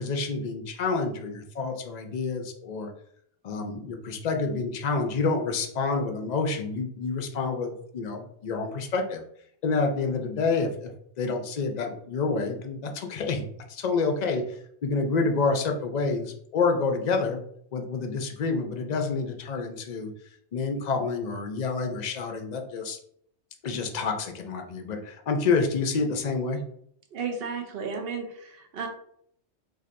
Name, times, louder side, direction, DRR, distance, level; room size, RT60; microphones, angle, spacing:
voice 1, 0.0-2.9 3.4-9.2 9.6-10.9 11.2-17.4 17.7-20.1 20.5-23.0 23.6-26.6, left 4 dB, 55° left, 4 dB, 0.5 m, -28 dB
voice 2, 27.1-28.9, right 5 dB, 60° right, 4 dB, 0.8 m, -33 dB
4.2 x 2.7 x 2.5 m, 0.68 s
omnidirectional pair, 1.2 m